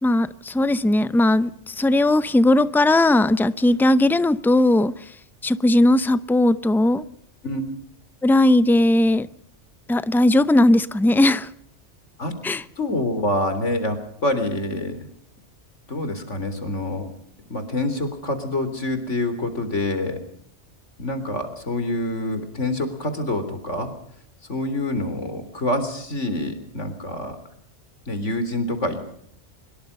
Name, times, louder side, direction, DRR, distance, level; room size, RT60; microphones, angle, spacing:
voice 1, 0.0-5.0 5.4-7.0 8.2-9.3 9.9-11.5 12.4-12.6, left 1 dB, ahead, 0.6 m, -18 dB
voice 2, 12.8-15.1 15.9-17.1 17.5-20.2 21.0-23.9 24.5-27.4 28.1-29.2, left 1 dB, 85° left, 3.9 m, -26 dB
24.0 x 22.0 x 5.5 m
omnidirectional pair, 1.2 m